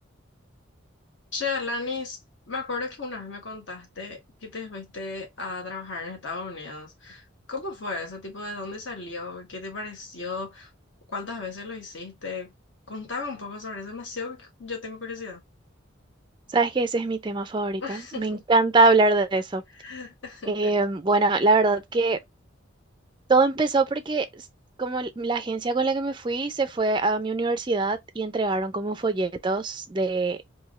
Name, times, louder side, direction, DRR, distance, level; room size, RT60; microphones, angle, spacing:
voice 1, 1.3-2.2 2.5-10.7 11.1-12.5 12.9-15.4 17.8-18.4 19.7-20.7, left 4 dB, 60° left, 1.4 m, -35 dB
voice 2, 16.5-19.6 20.5-22.2 23.3-24.3 24.8-30.4, right 3 dB, 25° right, 0.4 m, -23 dB
3.5 x 2.7 x 3.1 m
head